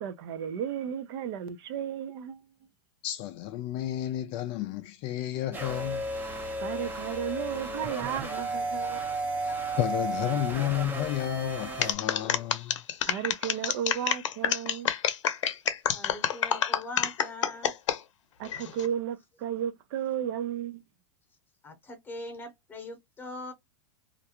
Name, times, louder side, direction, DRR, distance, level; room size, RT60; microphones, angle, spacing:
voice 1, 0.0-2.4 6.6-9.0 13.1-14.9 18.4-20.8, right 9 dB, 50° right, 0.5 m, -34 dB
voice 2, 3.0-6.1 9.5-12.8, left 13 dB, 35° left, 0.4 m, -32 dB
sound 1, 5.5-11.9, right 2 dB, 10° right, 0.6 m, -33 dB
sound 2, 11.8-18.0 18.5-18.9, left 9 dB, 80° left, 0.6 m, -27 dB
voice 3, 15.9-17.7 21.6-23.5, left 2 dB, 15° left, 0.9 m, -41 dB
2.5 x 2.1 x 2.8 m
supercardioid pair, 140°, 16 cm